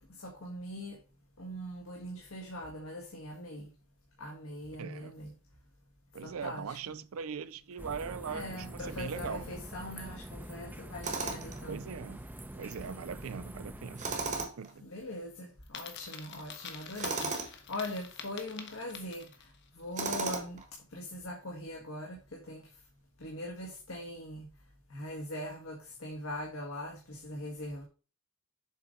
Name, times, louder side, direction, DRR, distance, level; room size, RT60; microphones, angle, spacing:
voice 1, 0.1-1.0 1.4-3.7 4.2-5.3 6.2-6.8 8.3-11.8 14.8-20.6 20.9-22.7 23.2-24.5 24.9-27.8, left 1 dB, 75° left, 1.5 m, -41 dB
voice 2, 4.8-5.1 6.1-9.5 11.7-12.2 12.6-14.8, right 6 dB, 70° right, 0.5 m, -40 dB
sound 1, 7.8-14.5, right 1 dB, 10° right, 0.7 m, -45 dB
Tools, 11.0-11.6 14.0-14.7 17.0-17.5 20.0-20.7, right 3 dB, 35° right, 1.3 m, -35 dB
Coin (dropping), 15.6-19.6, left 7 dB, 55° left, 1.1 m, -46 dB
7.3 x 3.8 x 5.1 m
head